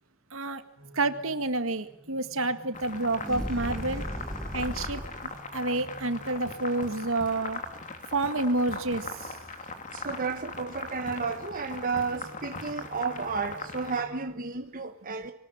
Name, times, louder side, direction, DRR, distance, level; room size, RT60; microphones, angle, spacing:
voice 1, 0.3-0.6 0.9-4.1 4.5-7.6 8.1-9.4, right 2 dB, 65° right, 1.8 m, -29 dB
sound 1, 0.8-7.4 11.6-14.4, right 1 dB, 85° right, 4.0 m, -51 dB
sound 2, 2.7-14.0, left 3 dB, 35° left, 2.9 m, -40 dB
sound 3, 3.2-5.4, equal, 5° left, 2.7 m, -36 dB
voice 2, 9.6-15.3, right 5 dB, 40° right, 1.2 m, -32 dB
24.0 x 19.5 x 9.0 m
head